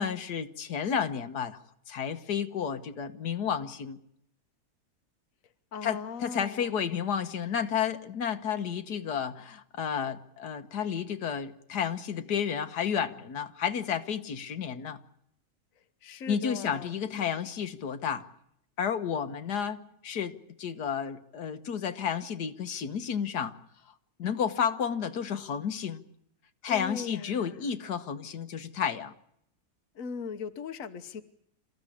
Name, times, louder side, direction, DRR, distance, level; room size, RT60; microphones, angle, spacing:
voice 1, 0.0-1.6 1.9-4.0 5.8-15.0 16.3-18.3 18.8-23.5 24.2-26.0 26.6-29.1, left 7 dB, 85° left, 9 dB, 1.8 m, -31 dB
voice 2, 5.7-6.9 15.8-17.0 26.7-27.7 29.9-31.2, left 5 dB, 60° left, 9 dB, 1.5 m, -39 dB
27.5 x 15.0 x 9.9 m, 0.73 s
omnidirectional pair, 1.7 m